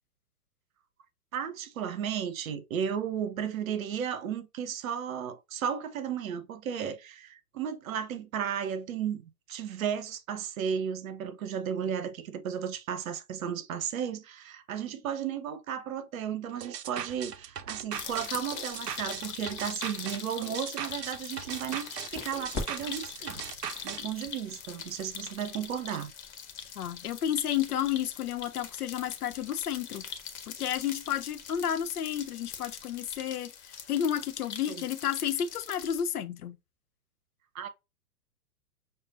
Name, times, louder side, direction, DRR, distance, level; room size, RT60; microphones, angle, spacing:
voice 1, 1.3-23.4 23.8-26.1 34.7-34.8 37.5-37.7, right 8 dB, 60° right, 0.8 m, -34 dB
sound 1, 16.6-24.0, right 9 dB, 80° right, 0.6 m, -39 dB
sound 2, 17.9-36.0, left 7 dB, 45° left, 0.9 m, -42 dB
sound 3, 20.8-33.2, left 3 dB, 15° left, 0.4 m, -48 dB
voice 2, 26.8-30.0 30.5-36.6, left 9 dB, 70° left, 0.7 m, -31 dB
6.4 x 2.1 x 2.5 m
figure-of-eight pair, 105°, 47 cm